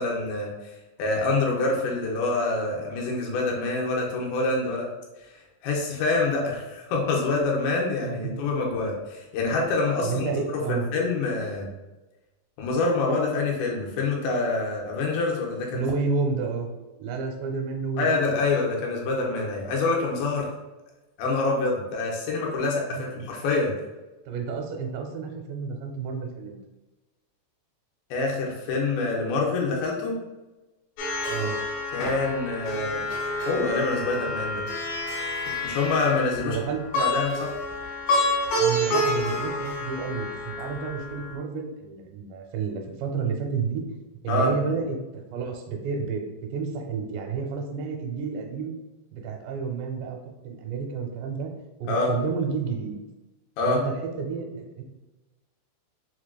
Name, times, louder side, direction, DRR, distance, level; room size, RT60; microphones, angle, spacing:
voice 1, 0.0-4.9 5.3-10.3 10.5-11.7 12.6-15.9 18.0-20.5 21.2-23.7 28.1-30.2 31.9-33.0 33.5-34.6 35.5-36.6 36.9-37.5 44.3-44.5 51.9-52.1 53.6-53.8, left 3 dB, 85° left, -1 dB, 2.9 m, -26 dB
voice 2, 8.0-8.3 10.0-10.9 15.7-16.7 17.0-18.4 22.9-23.0 24.3-26.6 31.3-31.6 36.4-37.0 38.6-43.8 44.2-48.8 49.1-50.2 50.4-51.5 51.8-52.9 53.7-54.8, right 5 dB, 85° right, 3 dB, 2.8 m, -30 dB
Plucked string instrument, 31.0-41.3, left 1 dB, 65° left, 2.5 m, -28 dB
6.5 x 2.4 x 2.2 m, 1.1 s
omnidirectional pair, 4.9 m